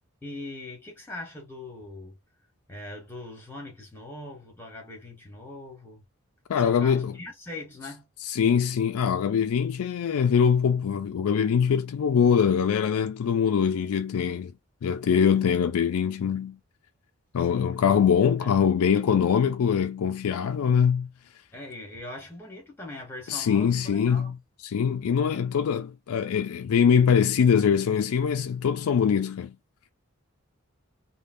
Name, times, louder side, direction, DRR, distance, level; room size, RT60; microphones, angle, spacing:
voice 1, 0.2-2.2 2.7-6.0 6.6-8.1 17.4-17.8 18.4-18.5 21.5-24.4, left 2 dB, 10° left, 1.2 m, -41 dB
voice 2, 6.5-7.1 8.3-14.5 14.8-16.6 17.3-21.1 23.3-24.3 24.6-29.5, left 7 dB, 80° left, 0.4 m, -23 dB
3.3 x 2.2 x 2.5 m
head